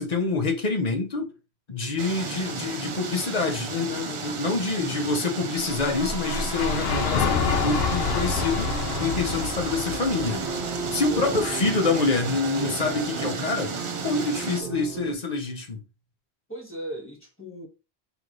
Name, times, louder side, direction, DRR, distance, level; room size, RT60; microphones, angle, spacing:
voice 1, 0.0-1.3 1.7-8.7 9.0-10.5 10.9-13.7 14.0-15.8, left 3 dB, 40° left, 0.9 m, -26 dB
sound 1, 2.0-14.6, right 4 dB, 40° right, 0.5 m, -34 dB
sound 2, 5.6-11.8, left 5 dB, 70° left, 0.8 m, -28 dB
sound 3, 7.4-15.1, right 6 dB, 80° right, 0.9 m, -35 dB
voice 2, 11.1-11.5 14.6-14.7 16.5-17.7, equal, 15° left, 1.0 m, -38 dB
3.1 x 2.9 x 3.8 m
omnidirectional pair, 1.1 m